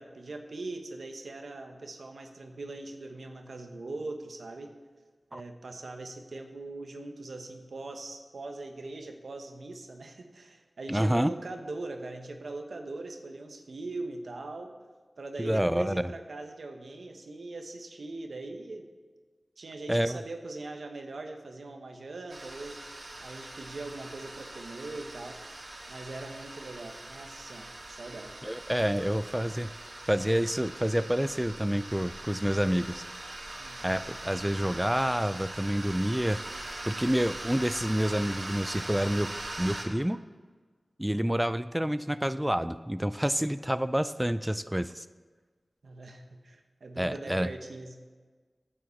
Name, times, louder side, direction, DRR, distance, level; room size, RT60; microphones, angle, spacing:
voice 1, 0.0-4.7 5.3-14.7 15.2-18.9 19.6-22.8 23.2-25.4 25.9-28.4 33.6-33.8 45.8-48.0, right 2 dB, 80° right, 5 dB, 1.2 m, -41 dB
voice 2, 10.9-11.3 15.4-16.1 19.9-20.2 28.4-29.7 30.1-33.0 33.8-39.3 39.6-40.2 41.0-45.1 47.0-47.5, equal, 10° right, 13 dB, 0.4 m, -28 dB
sound 1, 22.3-39.9, right 2 dB, 65° right, 2.0 m, -42 dB
9.9 x 7.8 x 7.1 m, 1.4 s
wide cardioid pair, 50°, 0 cm